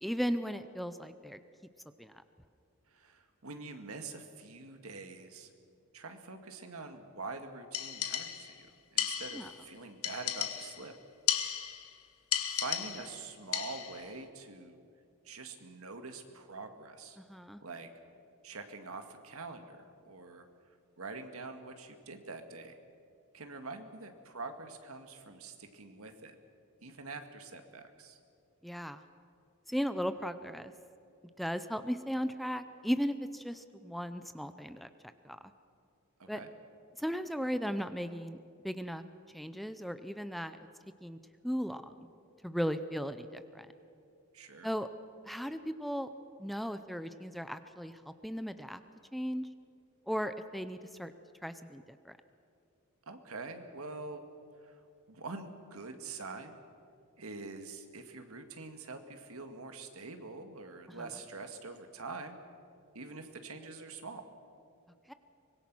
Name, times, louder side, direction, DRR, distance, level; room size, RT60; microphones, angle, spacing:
voice 1, 0.0-1.4 2.0-2.2 9.3-9.5 17.2-17.6 28.6-29.0 29.7-30.7 31.4-34.9 35.2-35.4 36.3-36.4 37.0-38.4 38.6-39.0 39.3-40.6 41.0-41.2 41.4-42.1 42.4-43.7 44.6-44.9 45.3-46.1 46.4-48.8 49.1-49.5 50.1-51.1 51.4-52.2 60.9-61.1 65.1-65.2, equal, ahead, 10 dB, 0.6 m, -36 dB
voice 2, 2.9-5.5 5.9-10.9 12.6-14.8 15.3-17.2 17.6-17.9 18.4-20.4 21.0-22.8 23.3-26.4 26.8-28.2 36.2-36.5 44.3-44.7 53.1-54.2 54.6-54.8 55.1-56.6 57.2-62.4 62.9-64.3, right 3 dB, 75° right, 6 dB, 2.0 m, -45 dB
sound 1, 7.7-8.6 9.0-9.6 10.0-10.9 11.3-11.9 12.3-13.2 13.5-14.0, left 10 dB, 75° left, 1.5 m, -34 dB
24.5 x 21.5 x 6.2 m, 2.5 s
head